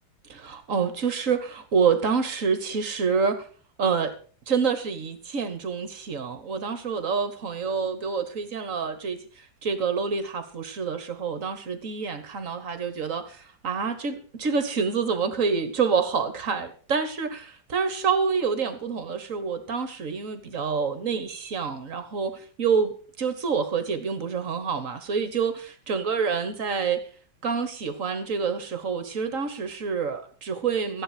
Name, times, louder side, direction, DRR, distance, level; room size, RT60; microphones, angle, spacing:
voice 1, 0.3-3.5 3.8-4.1 4.5-27.0 27.4-31.0, right 5 dB, 45° right, 10 dB, 1.5 m, -27 dB
14.0 x 10.0 x 5.0 m, 0.41 s
omnidirectional pair, 2.1 m